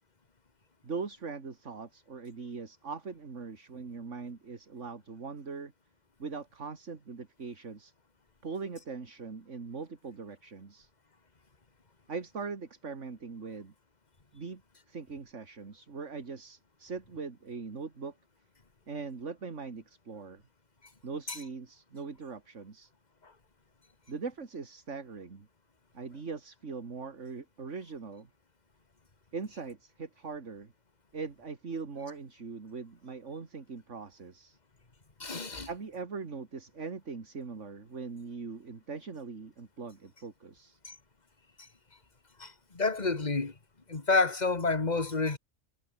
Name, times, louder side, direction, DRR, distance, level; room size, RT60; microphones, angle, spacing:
voice 1, 0.8-5.7 6.2-7.9 8.4-10.9 12.1-13.7 14.3-14.6 14.9-18.1 18.9-20.4 21.0-22.9 24.1-25.5 25.9-28.3 29.3-30.7 31.1-34.6 35.6-40.8, right 4 dB, 65° right, 2.5 m, -41 dB
voice 2, 35.2-35.7 40.8-40.9 41.6-41.7 42.4-43.5 43.9-45.4, left 3 dB, 35° left, 2.0 m, -29 dB
omnidirectional pair, 1.4 m